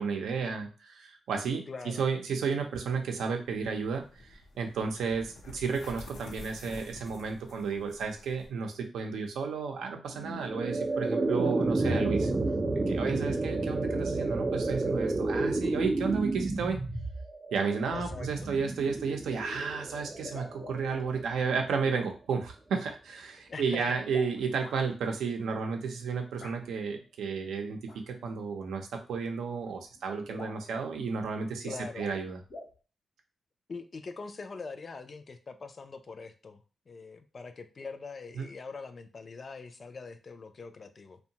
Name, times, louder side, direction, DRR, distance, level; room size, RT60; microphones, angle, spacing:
voice 1, 0.0-12.3 12.9-16.8 17.5-32.4 38.4-38.5, right 5 dB, 85° right, 3 dB, 0.5 m, -32 dB
voice 2, 1.7-2.0 17.9-18.5 23.5-23.8 31.6-32.1 33.7-41.2, left 4 dB, 50° left, 9 dB, 0.3 m, -43 dB
sound 1, 3.5-8.5, left 2 dB, 85° left, 0.7 m, -49 dB
sound 2, 10.1-21.3, right 2 dB, 30° right, 0.4 m, -31 dB
sound 3, 17.5-17.6 17.9-18.3 19.3-19.4 20.1-21.0 21.7-22.1 24.0-24.8 26.4-26.6 27.8-28.0 29.2-29.3 29.6-29.7 29.9-30.0 30.3-30.7 31.5-32.2 32.5-32.7, left 2 dB, 70° left, 1.0 m, -46 dB
2.7 x 2.2 x 2.8 m, 0.35 s
cardioid pair, 65°, 0 cm